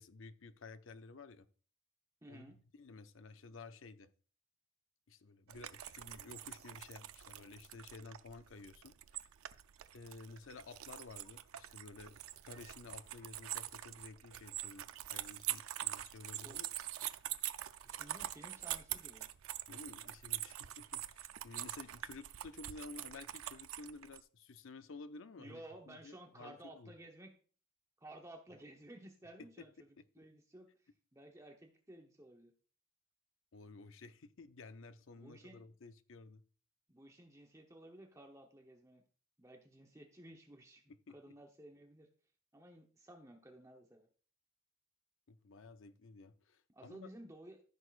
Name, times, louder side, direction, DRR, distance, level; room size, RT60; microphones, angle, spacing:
voice 1, 0.0-1.5 2.3-4.1 5.1-9.0 9.9-16.7 19.7-26.9 29.4-29.7 30.0-30.2 33.5-36.4 40.9-41.3 45.3-47.1, left 3 dB, 65° left, 0.6 m, -53 dB
voice 2, 2.2-2.6 16.4-16.6 17.8-19.3 25.4-27.3 28.0-29.9 30.1-30.7 31.1-32.5 35.2-35.6 36.9-39.0 39.4-40.8 41.1-42.1 42.5-44.1 46.7-47.6, right 1 dB, 15° right, 0.9 m, -55 dB
sound 1, 5.5-24.2, right 13 dB, 85° right, 0.5 m, -44 dB
14.0 x 6.3 x 2.5 m
head